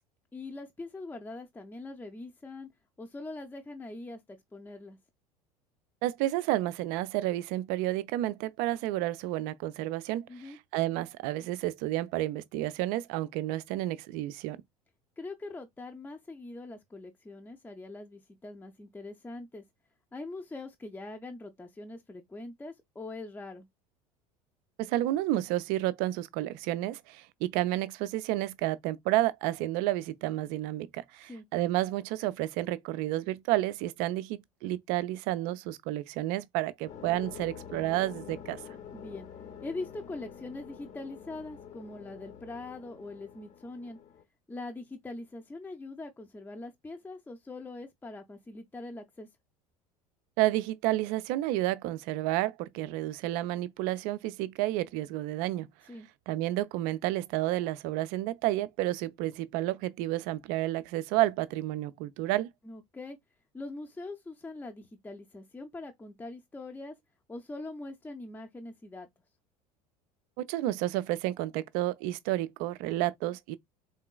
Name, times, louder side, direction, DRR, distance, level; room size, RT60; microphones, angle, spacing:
voice 1, 0.3-2.7 3.0-5.0 10.3-10.6 15.2-19.6 20.1-23.7 31.3-31.4 38.9-39.3 39.6-44.0 44.5-49.3 55.9-56.1 62.6-63.2 63.5-66.9 67.3-69.1, left 2 dB, 10° left, 0.6 m, -42 dB
voice 2, 6.0-14.6 24.8-38.6 50.4-55.7 56.3-62.5 70.4-73.6, right 15 dB, 50° right, 0.4 m, -31 dB
sound 1, 36.9-44.2, left 8 dB, 35° left, 0.8 m, -47 dB
3.8 x 3.7 x 2.3 m
figure-of-eight pair, 70°, 19 cm